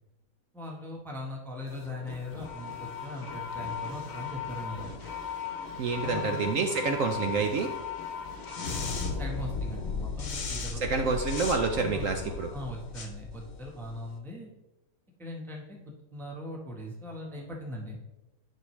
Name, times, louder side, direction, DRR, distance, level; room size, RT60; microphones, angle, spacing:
voice 1, 0.5-4.9 6.0-7.0 9.0-11.1 11.8-14.5 15.2-15.8 16.1-18.0, left 1 dB, ahead, 0 dB, 0.9 m, -40 dB
sound 1, 1.7-14.1, left 5 dB, 45° left, 1.1 m, -37 dB
voice 2, 5.8-7.7 10.8-12.5, right 4 dB, 65° right, 5 dB, 0.8 m, -28 dB
10.5 x 5.6 x 3.2 m, 0.98 s
omnidirectional pair, 1.9 m